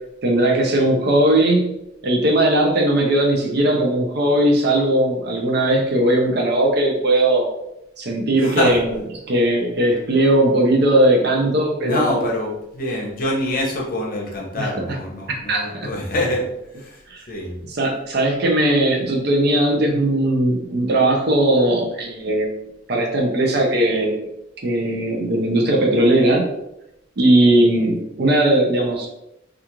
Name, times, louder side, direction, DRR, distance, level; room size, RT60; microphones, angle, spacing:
voice 1, 0.2-1.8 2.0-7.5 8.0-9.0 9.3-12.3 14.5-15.0 15.3-15.9 17.1-17.2 17.7-22.6 22.9-24.2 24.6-26.5 27.2-29.1, right 1 dB, 55° right, 1 dB, 0.5 m, -18 dB
voice 2, 8.4-8.7 11.8-16.4 16.8-17.0 17.3-17.5, left 1 dB, 45° left, -1 dB, 0.7 m, -25 dB
2.4 x 2.3 x 2.9 m, 0.87 s
head